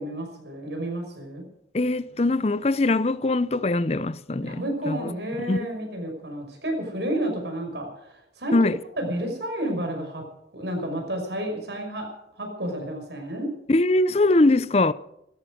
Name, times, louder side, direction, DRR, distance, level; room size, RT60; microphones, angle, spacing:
voice 1, 0.0-1.4 4.4-8.6 9.0-10.2 10.5-12.1 12.4-13.5, right 1 dB, 75° right, 5.8 m, -31 dB
voice 2, 1.7-5.1 5.5-5.7 8.5-8.8 13.7-14.9, left 2 dB, 35° left, 0.6 m, -22 dB
16.5 x 13.5 x 6.4 m
head